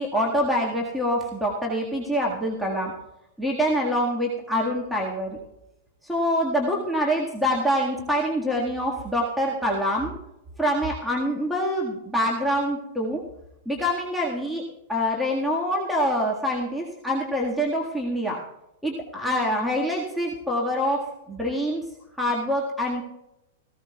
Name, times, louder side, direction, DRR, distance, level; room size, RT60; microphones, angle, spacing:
voice 1, 0.0-2.9 3.4-5.4 6.0-10.1 10.6-13.2 13.6-14.6 14.9-18.4 18.8-21.8 22.2-23.0, equal, ahead, -2 dB, 1.7 m, -25 dB
18.0 x 15.0 x 2.3 m, 0.89 s
figure-of-eight pair, 100°, 0 cm